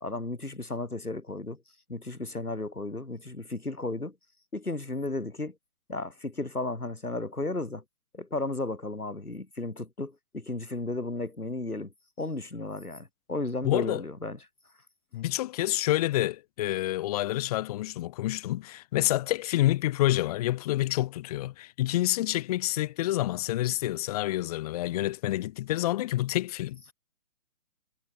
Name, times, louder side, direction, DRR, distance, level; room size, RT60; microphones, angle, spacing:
voice 1, 0.0-1.6 1.9-4.1 4.5-5.5 5.9-7.8 8.1-11.9 12.2-14.4, left 2 dB, 90° left, 3.2 m, -34 dB
voice 2, 13.6-14.0 15.1-26.9, left 15 dB, 25° left, 1.8 m, -28 dB
figure-of-eight pair, 135°, 43 cm